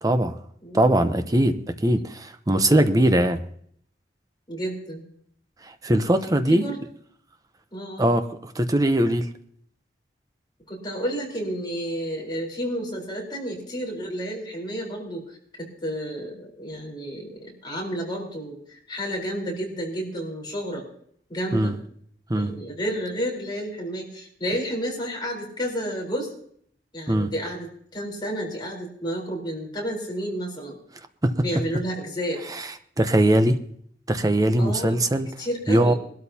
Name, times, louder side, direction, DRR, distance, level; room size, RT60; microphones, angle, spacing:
voice 1, 0.0-0.4 0.7-3.4 5.6-6.6 8.0-9.3 21.5-21.7 22.3-22.5 27.1-27.3 31.2-31.3 33.0-33.6 34.1-35.3 35.7-35.9, right 1 dB, 20° right, 0.8 m, -21 dB
voice 2, 4.5-5.0 6.5-6.8 7.7-8.0 10.7-20.8 21.3-21.7 22.4-26.3 26.9-30.8 31.4-32.4 34.6-35.0 35.4-36.0, equal, 25° left, 4.1 m, -31 dB
22.0 x 12.5 x 2.8 m
head